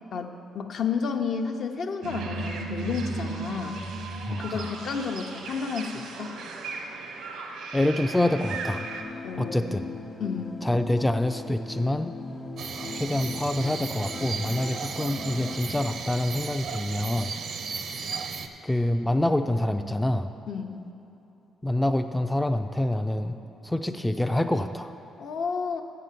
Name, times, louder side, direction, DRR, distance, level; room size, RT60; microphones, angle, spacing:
voice 1, 0.1-3.8 4.3-6.4 9.2-9.8 10.2-10.6 20.5-20.8 25.2-25.8, left 5 dB, 60° left, 4 dB, 0.7 m, -31 dB
sound 1, 2.0-9.0, right 3 dB, 85° right, 0.9 m, -36 dB
voice 2, 4.3-4.7 7.7-8.9 9.4-9.8 10.6-12.1 12.9-17.4 18.6-20.3 21.6-23.4 23.6-24.9, left 1 dB, 5° left, 7 dB, 0.3 m, -26 dB
sound 2, 8.1-16.0, left 3 dB, 35° left, 0.9 m, -39 dB
sound 3, 12.6-18.5, right 5 dB, 65° right, 0.5 m, -35 dB
7.3 x 6.7 x 7.5 m, 2.9 s
cardioid pair, 90°, 0 cm